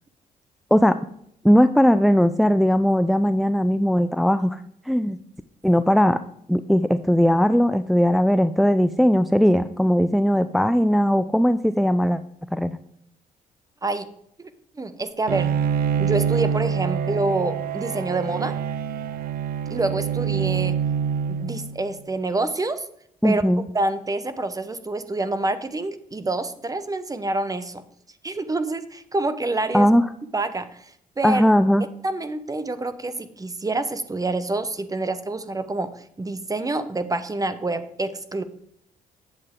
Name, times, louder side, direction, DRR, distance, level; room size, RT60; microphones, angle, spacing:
voice 1, 1.4-4.6 4.9-5.2 5.6-6.2 6.5-12.2 12.5-12.8 23.2-23.6 29.7-30.0 31.2-31.9, equal, ahead, 11 dB, 0.4 m, -18 dB
voice 2, 14.8-15.5 16.0-18.6 19.7-20.8 21.3-22.8 23.2-23.4 23.7-27.8 28.2-29.9 30.3-30.9 31.2-31.4 32.0-38.4, right 2 dB, 20° right, 12 dB, 0.9 m, -27 dB
Bowed string instrument, 15.3-22.0, right 7 dB, 70° right, 0.5 m, -25 dB
8.9 x 7.5 x 3.7 m, 0.71 s
supercardioid pair, 65°, 16 cm